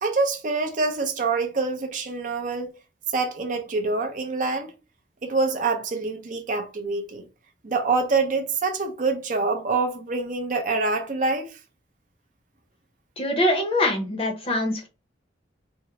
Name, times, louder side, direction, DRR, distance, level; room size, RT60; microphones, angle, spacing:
voice 1, 0.0-2.7 3.1-4.7 5.2-7.3 7.6-11.6, right 3 dB, 40° right, 0.5 m, -26 dB
voice 2, 13.2-14.9, left 1 dB, 30° left, 0.7 m, -23 dB
3.6 x 2.0 x 2.9 m
head